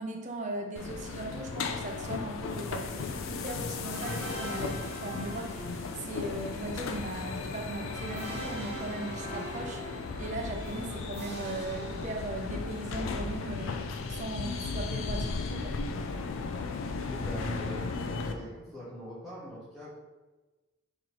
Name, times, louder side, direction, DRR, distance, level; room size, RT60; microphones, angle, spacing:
voice 1, 0.0-15.8, right 2 dB, 35° right, 3 dB, 0.4 m, -38 dB
sound 1, 0.8-18.3, left 4 dB, 75° left, 0.3 m, -36 dB
sound 2, 3.9-12.8, right 1 dB, 50° right, 1.2 m, -43 dB
voice 2, 17.1-19.9, equal, ahead, -12 dB, 1.3 m, -43 dB
3.8 x 3.1 x 3.0 m, 1.2 s
head